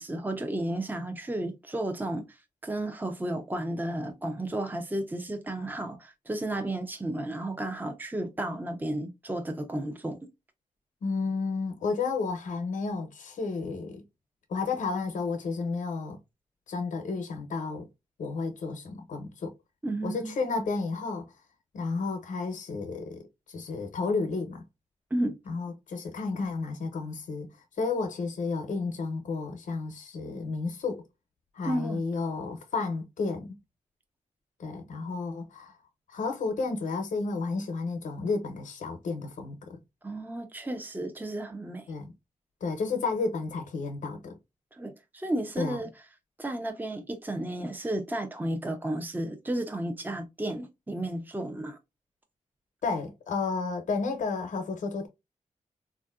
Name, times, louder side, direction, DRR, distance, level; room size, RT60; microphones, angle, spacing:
voice 1, 0.0-2.4 2.6-10.2 19.8-20.3 25.1-25.4 31.6-32.0 40.0-41.9 44.7-45.9 46.4-51.8, right 1 dB, 15° right, 0.6 m, -33 dB
voice 2, 11.0-14.0 14.5-16.2 16.7-17.9 18.2-19.5 20.0-21.3 21.7-23.2 23.5-24.6 25.5-27.5 27.8-31.0 31.5-33.5 34.6-35.7 36.1-39.8 41.9-42.1 42.6-44.4 45.6-45.8 52.8-55.1, left 4 dB, 85° left, 0.7 m, -32 dB
3.5 x 2.5 x 2.3 m
cardioid pair, 70°, 13 cm